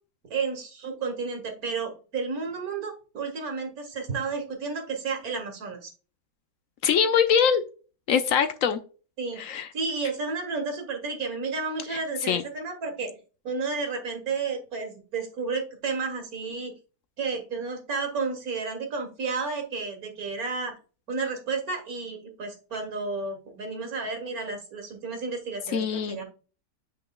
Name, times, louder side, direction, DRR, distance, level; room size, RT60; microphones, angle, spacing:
voice 1, 0.3-5.9 9.2-9.4 9.7-13.1 13.4-16.7 17.2-20.8 21.1-26.2, right 4 dB, 70° right, 4 dB, 2.0 m, -32 dB
voice 2, 6.8-7.6 8.1-8.8 9.4-9.7 11.9-12.0 12.3-12.4 25.7-26.2, left 7 dB, 70° left, 10 dB, 1.0 m, -23 dB
7.9 x 5.3 x 2.3 m, 0.35 s
omnidirectional pair, 1.6 m